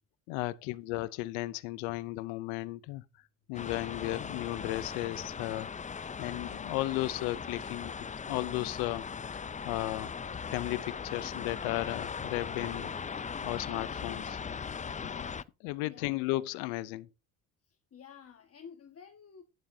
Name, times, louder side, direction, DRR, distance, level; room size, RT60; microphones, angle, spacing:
voice 1, 0.3-3.0 3.5-5.7 6.2-7.9 8.3-9.0 9.3-10.1 10.5-12.9 13.2-14.4 15.0-15.3 15.6-17.1, left 19 dB, 85° left, 0.7 m, -35 dB
sound 1, 3.5-15.4, left 6 dB, 20° left, 0.5 m, -39 dB
voice 2, 15.7-16.2 17.6-19.4, left 7 dB, 40° left, 1.6 m, -52 dB
11.5 x 9.8 x 2.7 m
supercardioid pair, 75°, 37 cm